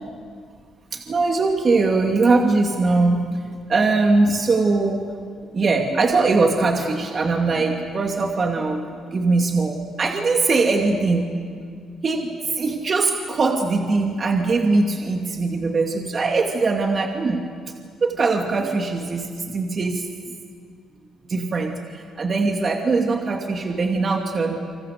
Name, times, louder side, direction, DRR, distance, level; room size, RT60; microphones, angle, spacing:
voice 1, 0.9-3.2 3.7-5.0 5.5-11.2 12.0-12.3 12.6-17.4 18.0-20.1 21.3-24.6, right 3 dB, 45° right, 2 dB, 2.5 m, -21 dB
29.0 x 26.0 x 6.7 m, 2.1 s
cardioid pair, 75°, 0 cm